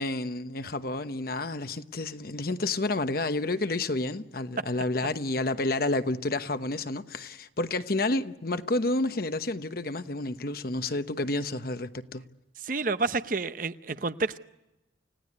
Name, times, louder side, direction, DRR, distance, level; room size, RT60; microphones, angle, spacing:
voice 1, 0.0-12.2, left 2 dB, 50° left, 1.0 m, -30 dB
voice 2, 12.6-14.4, right 3 dB, 45° right, 0.8 m, -29 dB
29.5 x 17.0 x 9.6 m
head